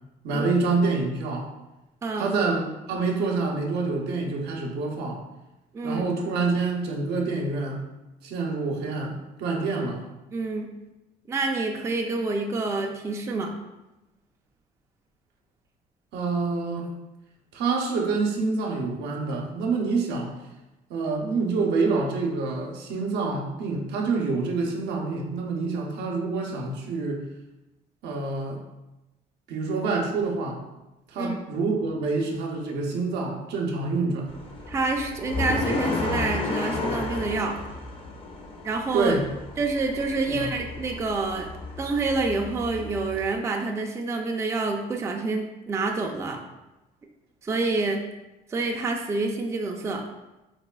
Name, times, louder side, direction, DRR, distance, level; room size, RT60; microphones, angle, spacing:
voice 1, 0.2-1.5 2.2-5.2 5.8-7.8 8.2-10.0 16.1-16.9 17.5-20.3 20.9-27.2 28.0-28.6 29.5-30.6 31.1-34.3 38.9-39.2 40.3-40.5, right 3 dB, 80° right, 1 dB, 0.6 m, -27 dB
voice 2, 2.0-2.3 5.7-6.0 10.3-10.7 11.3-13.5 31.2-31.4 34.7-37.6 38.6-39.1 39.6-41.5 41.8-46.4 47.4-48.1 48.5-50.0, right 3 dB, 15° right, 2 dB, 0.3 m, -27 dB
sound 1, 34.3-43.3, left 3 dB, 35° left, 0.5 m, -33 dB
4.1 x 2.3 x 2.2 m, 1.0 s
cardioid pair, 110°, 17 cm